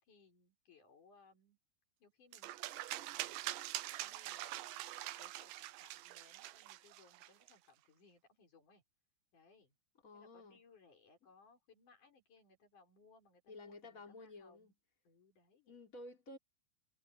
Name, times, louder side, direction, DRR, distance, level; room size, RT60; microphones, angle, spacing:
voice 1, 0.0-1.6 2.0-3.7 4.0-8.8 9.3-9.7 10.1-14.7 15.0-15.8, left 4 dB, 40° left, 6.5 m, -66 dB
sound 1, 2.3-7.5, right 16 dB, 80° right, 2.7 m, -44 dB
voice 2, 10.0-10.6 13.5-14.8 15.7-16.4, left 2 dB, 20° left, 3.4 m, -53 dB
omnidirectional pair, 6.0 m